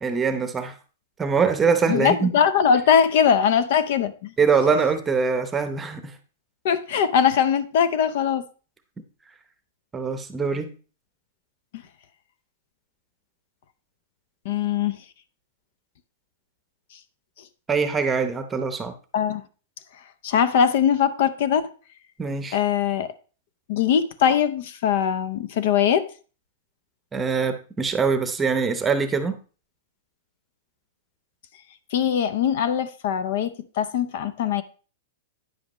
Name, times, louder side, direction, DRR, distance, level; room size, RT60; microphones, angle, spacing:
voice 1, 0.0-0.7 1.2-2.3 4.4-6.1 9.9-10.7 17.7-18.9 22.2-22.6 27.1-29.4, right 5 dB, 15° right, 0.8 m, -23 dB
voice 2, 1.9-4.3 6.6-8.4 14.4-15.0 19.1-19.4 20.2-21.7 22.5-23.1 23.7-26.1 31.9-34.6, left 8 dB, 55° left, 0.7 m, -21 dB
9.6 x 7.6 x 3.1 m
hypercardioid pair, 150°, 0 cm